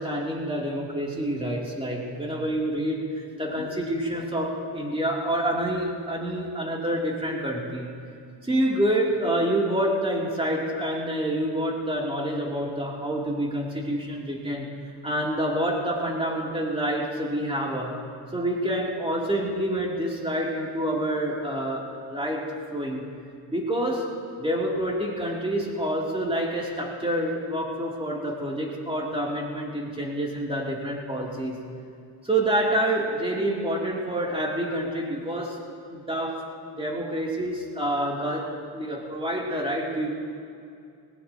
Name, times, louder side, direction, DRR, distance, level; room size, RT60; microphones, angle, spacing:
voice 1, 0.0-7.9 8.4-14.7 15.0-18.0 18.3-23.0 23.5-24.1 24.4-31.6 32.2-35.6 35.9-40.1, right 1 dB, 10° right, -3 dB, 3.4 m, -27 dB
21.0 x 18.5 x 3.1 m, 2.4 s
cardioid pair, 80°, 45 cm